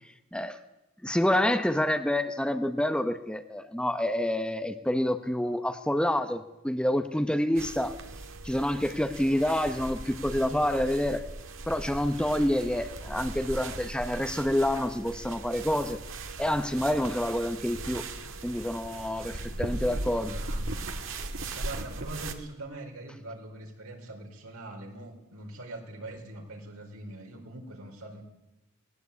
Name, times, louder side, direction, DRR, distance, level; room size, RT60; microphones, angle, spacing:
voice 1, 1.0-7.9 8.4-11.2 11.7-16.0 16.4-18.0 18.4-20.3, left 1 dB, 5° left, 8 dB, 0.9 m, -28 dB
sound 1, 7.5-22.3, right 2 dB, 60° right, 1.8 m, -38 dB
voice 2, 19.5-20.7 21.5-28.2, right 2 dB, 85° right, 3 dB, 4.4 m, -42 dB
19.5 x 18.5 x 8.4 m, 0.95 s
head